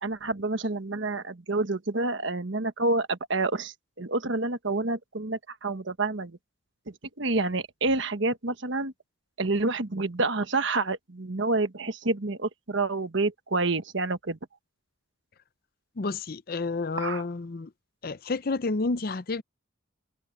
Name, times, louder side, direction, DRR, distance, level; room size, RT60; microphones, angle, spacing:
voice 1, 0.0-6.4 6.9-8.9 9.4-14.4 17.0-17.2, right 2 dB, 65° right, 1.3 m, -28 dB
voice 2, 16.0-17.7 18.0-19.4, left 3 dB, 45° left, 0.6 m, -30 dB
head